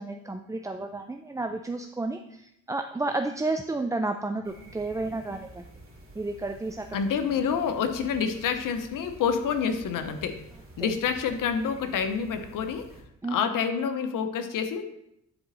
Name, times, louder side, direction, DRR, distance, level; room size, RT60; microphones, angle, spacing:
voice 1, 0.0-5.6 6.2-7.0 10.8-10.9 13.2-13.4, right 2 dB, 10° right, 5 dB, 0.3 m, -31 dB
sound 1, 4.4-13.0, right 2 dB, 45° right, 2.4 m, -49 dB
voice 2, 6.9-10.4 10.8-12.9 13.3-14.8, left 6 dB, 90° left, 8 dB, 0.8 m, -28 dB
10.0 x 4.2 x 4.0 m, 0.80 s
cardioid pair, 95°, 31 cm